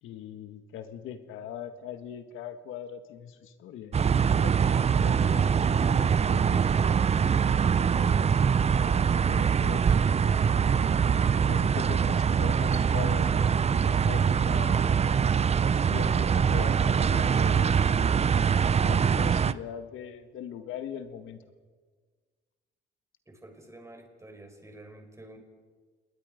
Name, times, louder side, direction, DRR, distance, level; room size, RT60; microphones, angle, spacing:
voice 1, 0.0-6.7 8.0-10.8 11.4-14.9 15.6-18.2 18.8-21.4, left 9 dB, 90° left, 9 dB, 1.6 m, -41 dB
sound 1, 3.9-19.5, right 7 dB, 30° right, 0.6 m, -23 dB
voice 2, 23.3-25.4, right 1 dB, 15° right, 4 dB, 4.6 m, -49 dB
27.5 x 20.5 x 5.1 m, 1.5 s
cardioid pair, 90°, 20 cm